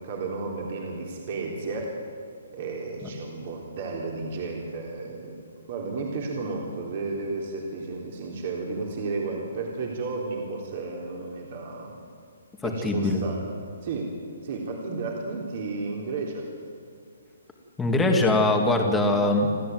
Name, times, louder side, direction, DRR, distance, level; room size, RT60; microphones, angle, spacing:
voice 1, 0.0-1.9 2.5-5.4 5.7-12.0 12.6-13.4 13.8-16.5, right 3 dB, 40° right, 0 dB, 3.9 m, -33 dB
voice 2, 12.6-13.2 17.8-19.5, left 2 dB, 5° left, 2 dB, 2.2 m, -22 dB
28.0 x 13.5 x 9.4 m, 2.2 s
hypercardioid pair, 165°, 0 cm